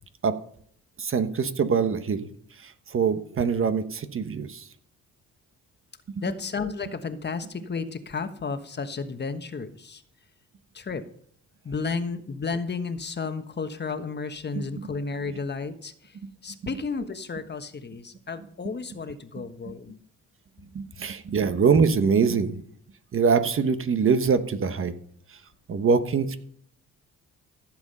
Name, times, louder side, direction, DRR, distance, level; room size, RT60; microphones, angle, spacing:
voice 1, 1.0-4.7 6.1-6.3 14.5-14.9 15.3-15.4 16.2-16.3 20.6-22.6 23.1-24.9 25.3-25.4 25.7-26.4, right 5 dB, 45° right, 10 dB, 1.2 m, -24 dB
voice 2, 6.2-10.0 10.7-11.0 11.6-16.1 16.4-20.0, left 4 dB, 35° left, 9 dB, 1.3 m, -32 dB
15.0 x 7.5 x 5.5 m, 0.63 s
cardioid pair, 90°, 30 cm